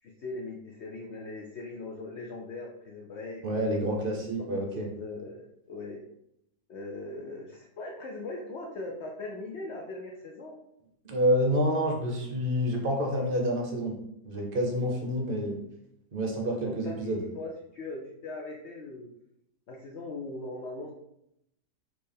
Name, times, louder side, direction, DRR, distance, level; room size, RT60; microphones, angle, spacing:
voice 1, 0.0-3.8 4.6-4.7 5.0-6.0 6.7-10.6 16.6-19.1 19.7-20.9, left 2 dB, 75° left, 0 dB, 0.6 m, -40 dB
voice 2, 3.4-4.9 11.0-13.9 14.2-15.6 16.1-17.2, equal, 45° right, 0 dB, 0.7 m, -28 dB
4.3 x 3.2 x 3.4 m, 0.79 s
omnidirectional pair, 1.8 m